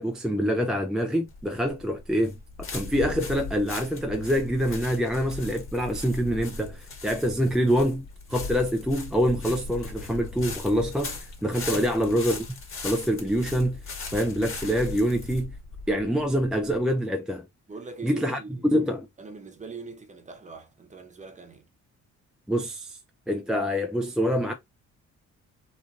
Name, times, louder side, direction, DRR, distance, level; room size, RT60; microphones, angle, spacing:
voice 1, 0.0-12.5 12.8-13.8 14.1-15.5 15.9-17.4 18.0-19.1 22.5-23.0 23.3-24.5, equal, ahead, 0.4 m, -26 dB
sound 1, 1.3-16.8, left 3 dB, 45° left, 1.4 m, -38 dB
sound 2, 8.1-8.2 8.6-8.7 9.1-9.9 10.3-12.6 12.8-12.9, left 3 dB, 65° left, 1.2 m, -46 dB
voice 2, 17.7-18.8 19.2-21.7, right 4 dB, 25° right, 0.9 m, -41 dB
3.0 x 2.4 x 2.4 m
cardioid pair, 90°, 30 cm